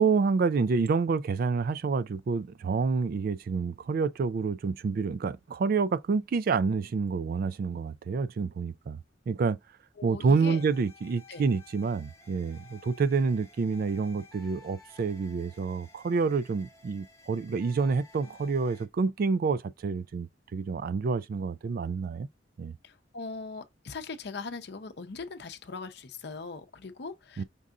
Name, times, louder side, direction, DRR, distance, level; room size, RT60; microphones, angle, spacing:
voice 1, 0.0-9.0 9.3-9.6 10.0-22.3 22.6-22.7 27.4-27.5, right 5 dB, 50° right, 0.3 m, -28 dB
voice 2, 10.0-10.6 11.3-11.5 22.8-27.4, left 4 dB, 60° left, 0.6 m, -40 dB
sound 1, 10.5-18.9, left 3 dB, 15° left, 0.9 m, -55 dB
5.3 x 2.4 x 3.6 m
head